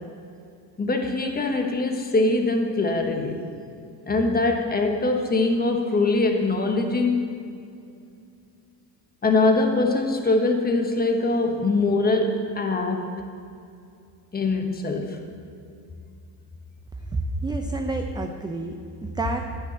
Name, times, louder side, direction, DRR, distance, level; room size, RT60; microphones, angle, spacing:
voice 1, 0.8-3.4 4.1-7.3 9.2-13.1 14.3-15.2, left 3 dB, 20° left, 3 dB, 1.2 m, -23 dB
voice 2, 17.1-19.4, right 2 dB, 10° right, 4 dB, 0.4 m, -29 dB
9.8 x 5.5 x 7.5 m, 2.5 s
cardioid pair, 105°, 45 cm